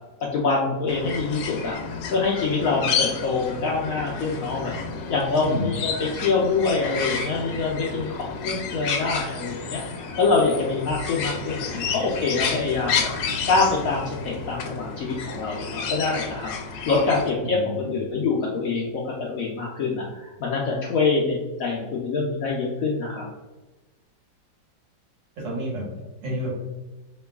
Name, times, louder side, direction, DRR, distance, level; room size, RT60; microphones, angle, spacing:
voice 1, 0.3-4.7 5.1-13.1 13.5-23.3, left 4 dB, 70° left, -3 dB, 0.8 m, -25 dB
sound 1, 0.9-17.3, left 5 dB, 85° left, 1.3 m, -31 dB
voice 2, 5.4-5.7 17.4-18.0 25.4-25.9 26.2-26.5, right 1 dB, 80° right, -4 dB, 2.0 m, -30 dB
5.2 x 3.0 x 2.3 m, 1.1 s
omnidirectional pair, 2.0 m